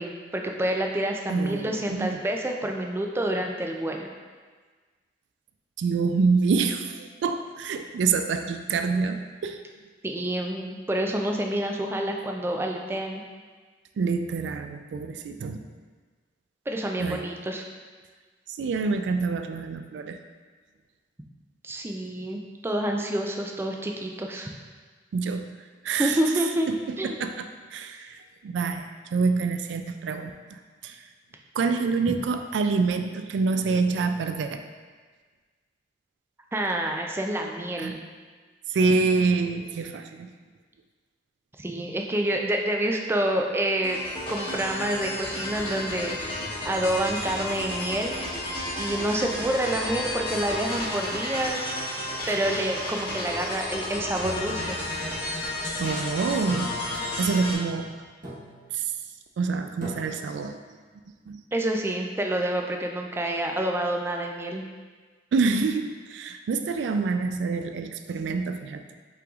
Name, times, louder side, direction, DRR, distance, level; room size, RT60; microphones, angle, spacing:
voice 1, 0.0-4.1 10.0-13.2 16.7-17.6 21.6-24.5 26.0-27.2 32.1-32.2 36.5-38.0 41.6-44.0 44.3-52.0 52.3-54.8 61.5-64.6, right 1 dB, 15° right, 2 dB, 0.3 m, -28 dB
voice 2, 1.3-2.1 5.8-9.6 14.0-15.6 17.0-17.2 18.6-20.2 25.1-25.4 25.8-26.2 27.0-28.2 28.4-31.0 31.6-34.6 37.8-38.0 38.7-40.3 55.8-57.9 58.7-58.8 59.4-60.6 61.3-61.4 65.3-68.8, right 4 dB, 90° right, 8 dB, 0.3 m, -26 dB
sound 1, 43.8-57.5, left 1 dB, 30° left, 1.0 m, -32 dB
sound 2, 54.2-55.4 56.5-57.3 58.2-58.8 59.8-60.5, equal, 50° right, 1.3 m, -41 dB
5.6 x 3.9 x 2.4 m, 1.5 s
head